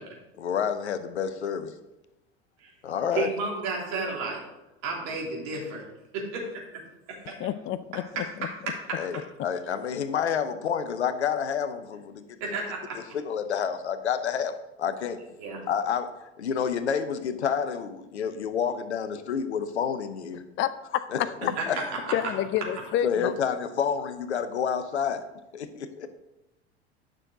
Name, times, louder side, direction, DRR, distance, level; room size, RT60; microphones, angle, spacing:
voice 1, 0.4-1.7 2.8-3.3 8.9-12.4 12.9-15.2 15.7-20.4 21.1-21.8 23.0-25.3 25.5-26.1, left 7 dB, 80° left, 11 dB, 0.8 m, -29 dB
voice 2, 3.1-4.4 4.8-5.6 7.1-7.4 8.4-8.5 8.9-9.0 12.4-12.8 15.4-15.6 21.6-21.7, right 4 dB, 55° right, -2 dB, 3.2 m, -31 dB
voice 3, 7.4-8.2 20.6-21.3 21.7-21.8 22.1-23.3, left 11 dB, 35° left, 13 dB, 0.6 m, -29 dB
9.7 x 6.3 x 3.8 m, 0.95 s
figure-of-eight pair, 75°, 33 cm